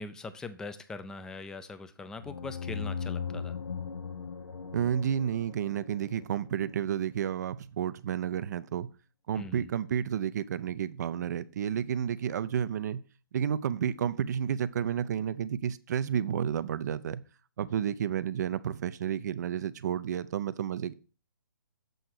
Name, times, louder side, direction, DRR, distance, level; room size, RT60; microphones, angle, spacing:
voice 1, 0.0-3.6 9.4-9.7, left 3 dB, 5° left, 0.4 m, -42 dB
sound 1, 2.2-6.7, left 6 dB, 85° left, 0.6 m, -38 dB
voice 2, 4.7-8.9 9.3-13.0 13.3-17.2 17.6-20.9, right 9 dB, 50° right, 0.5 m, -31 dB
7.8 x 4.3 x 6.5 m
hypercardioid pair, 140°, 12 cm